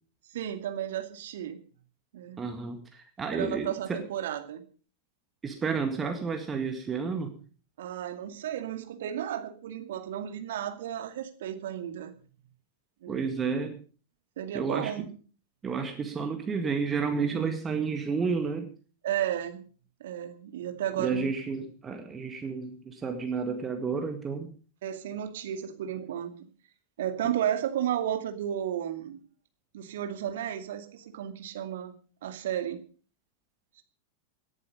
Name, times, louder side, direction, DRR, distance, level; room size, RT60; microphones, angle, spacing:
voice 1, 0.3-1.6 2.1-2.4 3.3-4.6 7.8-12.1 13.0-13.3 14.4-15.1 19.0-19.6 20.0-21.3 24.8-26.4 27.0-29.2 29.7-31.9 32.2-32.8 33.8-33.9, right 10 dB, 60° right, 8 dB, 2.3 m, -33 dB
voice 2, 2.4-4.0 5.4-7.3 13.1-13.8 14.5-14.9 15.6-18.7 21.0-24.5, right 5 dB, 20° right, 6 dB, 1.9 m, -31 dB
18.5 x 11.0 x 5.4 m, 0.39 s
figure-of-eight pair, 90°, 0 cm